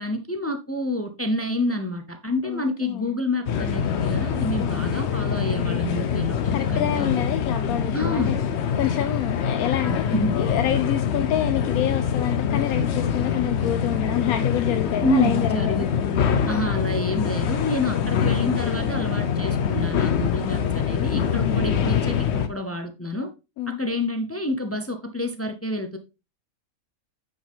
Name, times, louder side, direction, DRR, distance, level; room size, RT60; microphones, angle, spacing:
voice 1, 0.0-7.1 7.9-8.4 9.9-10.4 15.0-15.9 16.5-23.3 23.8-26.0, left 1 dB, 20° left, 0.4 m, -28 dB
voice 2, 2.4-3.1 4.6-4.8 6.4-8.4 8.8-10.0 10.4-15.9 21.4-21.6 23.6-23.8, left 11 dB, 90° left, 1.1 m, -27 dB
sound 1, 3.5-22.5, left 7 dB, 55° left, 0.9 m, -24 dB
9.2 x 5.1 x 3.5 m
omnidirectional pair, 1.5 m